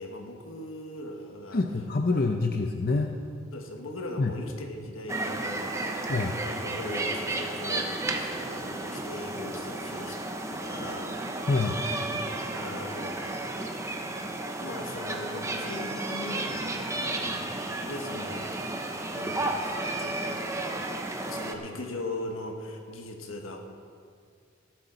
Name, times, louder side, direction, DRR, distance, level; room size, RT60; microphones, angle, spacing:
voice 1, 0.0-1.6 2.1-2.2 3.5-10.2 10.5-11.1 11.6-11.8 12.5-13.2 14.6-18.7 19.1-19.7 20.0-20.4 21.3-23.6, left 1 dB, 85° left, 2 dB, 1.4 m, -39 dB
voice 2, 1.5-3.1 4.2-4.3 6.1-6.3 11.5-11.8, left 3 dB, 45° left, 4 dB, 0.6 m, -26 dB
sound 1, 5.1-21.6, right 2 dB, 15° right, 0.8 m, -33 dB
18.0 x 9.3 x 4.0 m, 2.2 s
head